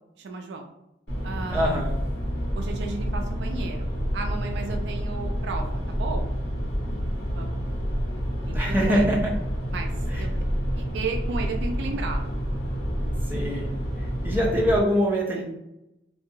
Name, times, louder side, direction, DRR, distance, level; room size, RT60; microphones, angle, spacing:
voice 1, 0.2-0.7 1.2-1.7 2.5-6.3 7.3-7.6 8.4-9.1 9.7-9.9 10.2-10.3 10.8-12.3, right 4 dB, 65° right, 4 dB, 0.3 m, -34 dB
sound 1, 1.1-14.8, equal, 65° left, 1.0 m, -28 dB
voice 2, 1.5-2.0 8.5-9.3 10.1-10.2 13.3-13.7 14.2-15.4, equal, 10° right, -4 dB, 0.5 m, -23 dB
2.7 x 2.3 x 2.6 m, 0.88 s
head